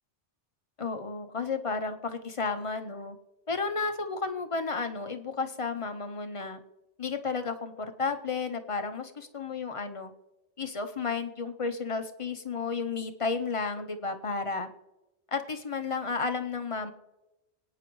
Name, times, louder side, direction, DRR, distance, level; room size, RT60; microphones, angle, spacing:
voice 1, 0.8-3.2 3.5-6.6 7.0-10.1 10.6-14.7 15.3-16.9, left 4 dB, 35° left, 7 dB, 0.6 m, -32 dB
24.0 x 9.2 x 3.1 m, 1.0 s
omnidirectional pair, 1.2 m